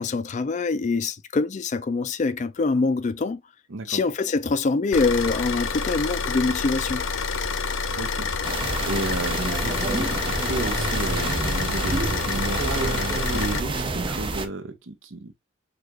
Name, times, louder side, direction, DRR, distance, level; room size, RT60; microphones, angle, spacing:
voice 1, 0.0-3.4 3.9-7.1, left 3 dB, 35° left, 0.4 m, -24 dB
voice 2, 3.7-4.0 8.0-15.4, right 3 dB, 65° right, 0.8 m, -33 dB
Car / Idling, 4.9-13.6, left 5 dB, 75° left, 0.6 m, -28 dB
sound 1, 8.4-14.5, right 2 dB, 25° right, 0.5 m, -28 dB
6.4 x 2.4 x 2.3 m
head